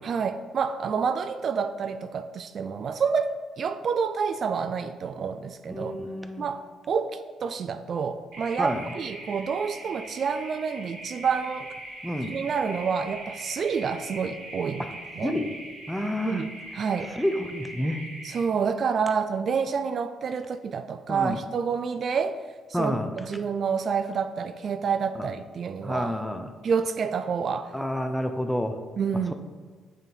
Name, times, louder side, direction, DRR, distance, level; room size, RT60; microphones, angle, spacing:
voice 1, 0.0-5.9 6.4-11.7 12.3-14.9 15.2-15.3 16.2-16.5 16.7-17.1 18.2-22.4 22.8-26.1 26.6-27.7 29.0-29.4, right 6 dB, 55° right, 10 dB, 0.3 m, -28 dB
voice 2, 5.7-6.5 8.6-8.8 12.0-12.4 15.2-15.5 15.9-16.5 17.1-18.0 21.1-21.4 22.7-23.1 25.1-25.3 25.8-26.5 27.7-28.8 29.3-29.4, equal, ahead, 7 dB, 0.5 m, -29 dB
sound 1, 8.3-18.4, right 1 dB, 80° right, 1.8 m, -41 dB
8.2 x 3.5 x 3.8 m, 1.5 s
cardioid pair, 90°, 0 cm